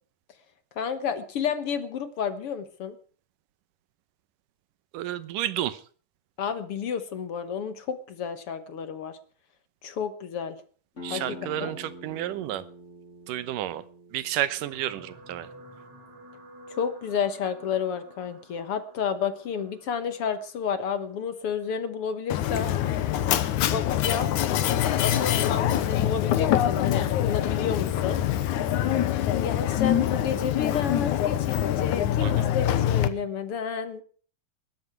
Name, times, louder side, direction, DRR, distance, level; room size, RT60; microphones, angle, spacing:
voice 1, 0.8-3.0 6.4-9.2 9.8-10.6 11.1-11.7 16.7-22.7 23.6-24.3 25.0-28.2 29.3-34.0, left 7 dB, 55° left, 11 dB, 1.8 m, -31 dB
voice 2, 4.9-5.8 11.0-12.6 13.3-13.8 14.1-15.5 32.2-32.4, right 12 dB, 85° right, 16 dB, 2.6 m, -31 dB
sound 1, 11.0-16.4, equal, 20° left, 3.5 m, -46 dB
sound 2, 14.6-23.0 23.8-24.0 24.3-24.4, right 1 dB, 55° right, 8.0 m, -51 dB
Mechanisms, 22.3-33.1, left 11 dB, 70° left, 2.4 m, -24 dB
21.0 x 12.0 x 4.7 m, 0.43 s
omnidirectional pair, 3.7 m